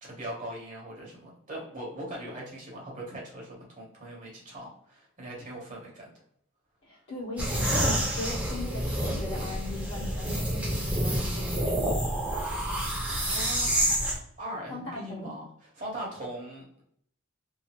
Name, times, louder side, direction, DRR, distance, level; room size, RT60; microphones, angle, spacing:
voice 1, 0.0-6.1 13.1-14.0 14.4-16.8, right 1 dB, 35° right, -3 dB, 0.9 m, -40 dB
voice 2, 6.8-11.7 14.7-15.3, left 1 dB, 55° left, -6 dB, 1.1 m, -38 dB
sound 1, 7.4-14.2, right 1 dB, 5° right, 0.7 m, -28 dB
2.7 x 2.4 x 2.8 m, 0.69 s
head